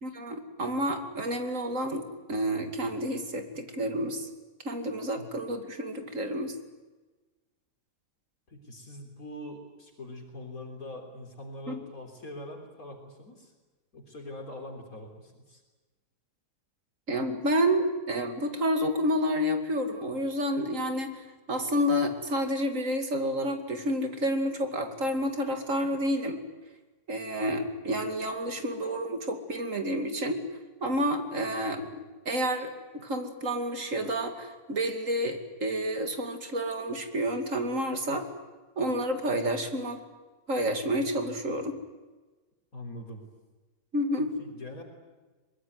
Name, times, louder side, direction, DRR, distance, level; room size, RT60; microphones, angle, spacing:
voice 1, 0.0-4.3 4.6-6.5 11.7-11.8 17.1-21.2 21.5-26.4 27.1-30.4 30.8-38.2 38.8-40.0 40.5-41.8 43.9-44.3, equal, 55° right, 6 dB, 2.9 m, -29 dB
voice 2, 8.5-13.5 13.9-15.6 42.7-43.2 44.2-44.8, left 1 dB, 60° left, 2 dB, 4.0 m, -43 dB
24.5 x 21.0 x 9.5 m, 1.2 s
omnidirectional pair, 1.7 m